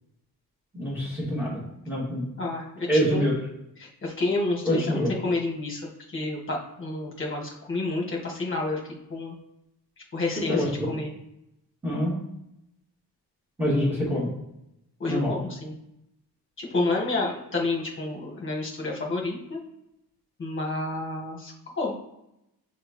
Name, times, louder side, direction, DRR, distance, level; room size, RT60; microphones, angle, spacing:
voice 1, 0.7-1.6 1.9-2.3 2.9-3.3 4.6-5.1 10.4-10.9 11.8-12.1 13.6-14.3 15.1-15.3, equal, 5° right, -7 dB, 2.3 m, -25 dB
voice 2, 2.4-3.2 3.8-8.8 9.1-9.3 10.1-11.1 13.7-14.0 15.0-15.7 16.6-19.6 20.4-22.0, left 2 dB, 30° left, -2 dB, 1.5 m, -30 dB
6.5 x 4.5 x 3.1 m, 0.84 s
wide cardioid pair, 175°, 39 cm